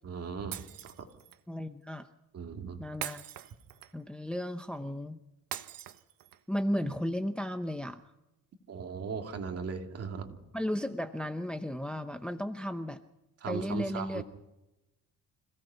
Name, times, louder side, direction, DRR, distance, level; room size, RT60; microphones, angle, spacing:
voice 1, 0.0-0.6 0.8-0.9 2.3-2.8 8.7-10.3 13.4-14.2, right 5 dB, 45° right, 3 dB, 2.6 m, -37 dB
Shatter, 0.5-1.4 3.0-4.1 5.5-6.5, right 12 dB, 75° right, 1.3 m, -42 dB
voice 2, 1.5-2.1 2.8-3.2 3.9-5.2 6.5-8.0 10.5-13.0 13.5-14.2, equal, 5° left, 7 dB, 0.7 m, -34 dB
26.0 x 17.5 x 5.8 m, 0.94 s
cardioid pair, 150°, 34 cm